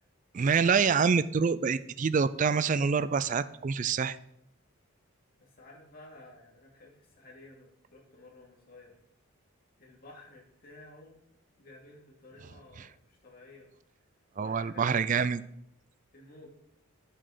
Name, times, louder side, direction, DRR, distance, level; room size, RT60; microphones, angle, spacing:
voice 1, 0.3-4.2 14.4-15.4, right 5 dB, 35° right, 14 dB, 0.3 m, -26 dB
voice 2, 5.4-9.0 9.8-11.2 11.6-13.7 14.3-15.3 16.1-16.5, left 2 dB, 40° left, -1 dB, 2.4 m, -53 dB
9.0 x 7.3 x 5.0 m, 0.76 s
head